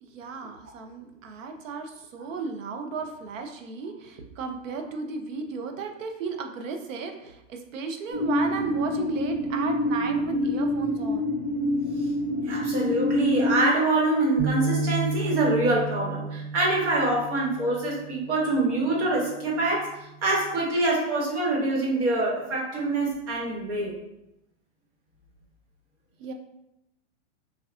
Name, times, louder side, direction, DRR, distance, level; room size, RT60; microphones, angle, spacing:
voice 1, 0.0-11.3 26.2-26.3, right 4 dB, 85° right, 5 dB, 0.6 m, -34 dB
sound 1, 8.1-13.6, left 1 dB, 30° left, 0.6 m, -26 dB
voice 2, 12.4-24.0, right 2 dB, 65° right, -3 dB, 1.2 m, -25 dB
sound 2, 14.4-18.6 19.1-19.3 20.2-20.6, right 3 dB, 20° right, 0.7 m, -32 dB
3.5 x 2.2 x 2.4 m, 0.85 s
supercardioid pair, 180°, 38 cm